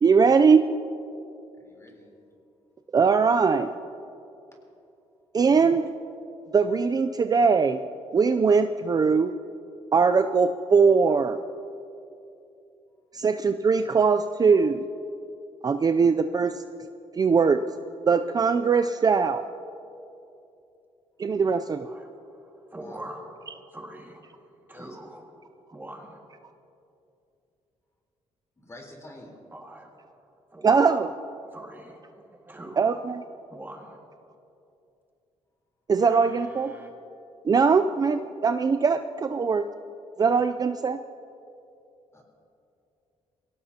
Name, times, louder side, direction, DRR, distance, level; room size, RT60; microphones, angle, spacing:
voice 1, 0.0-0.7 2.9-3.7 5.3-5.9 6.5-7.8 8.1-9.3 9.9-11.4 13.1-14.9 15.6-16.6 17.2-17.6 18.1-19.4 21.2-21.9 30.6-31.1 32.8-33.2 35.9-36.7 37.4-39.7 40.2-41.0, right 5 dB, 35° right, 8 dB, 0.4 m, -21 dB
voice 2, 1.5-2.1 22.8-23.0 24.7-25.0 28.6-29.4 42.1-42.2, left 1 dB, 25° left, 0 dB, 3.8 m, -47 dB
voice 3, 21.8-26.3 29.5-30.2 30.5-30.9 31.5-33.0 33.5-34.0 36.0-36.9, right 1 dB, 15° right, 1 dB, 1.9 m, -44 dB
22.5 x 17.0 x 2.9 m, 2.7 s
cardioid pair, 95°, 12 cm